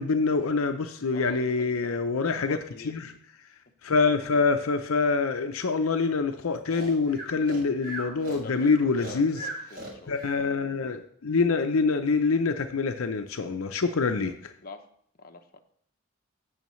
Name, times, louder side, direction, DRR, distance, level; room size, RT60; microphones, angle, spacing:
voice 1, 0.0-2.6 2.8-3.1 3.8-9.4 10.1-14.5, left 4 dB, 75° left, 7 dB, 0.6 m, -25 dB
voice 2, 1.1-2.0 2.4-3.0 8.4-10.2 14.3-14.4 14.6-14.9 15.1-15.6, left 3 dB, 45° left, 5 dB, 0.9 m, -45 dB
Breathing, 6.7-10.4, right 1 dB, 45° right, 4.7 m, -38 dB
16.0 x 6.4 x 3.1 m, 0.63 s
head